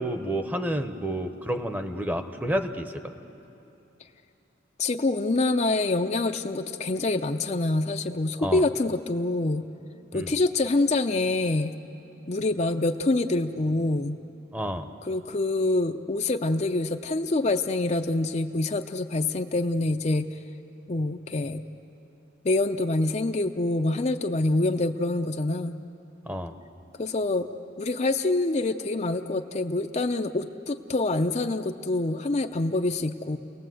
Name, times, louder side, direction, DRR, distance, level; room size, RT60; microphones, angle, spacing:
voice 1, 0.0-2.9 8.4-8.6 10.1-10.3 14.5-14.9 26.3-26.5, right 1 dB, 10° right, 7 dB, 0.9 m, -30 dB
voice 2, 4.8-9.6 10.1-11.7 12.3-14.2 15.1-20.3 20.9-21.6 22.4-25.8 27.0-27.5 27.8-33.4, left 2 dB, 35° left, 6 dB, 0.6 m, -26 dB
30.0 x 18.5 x 7.8 m, 2.9 s
head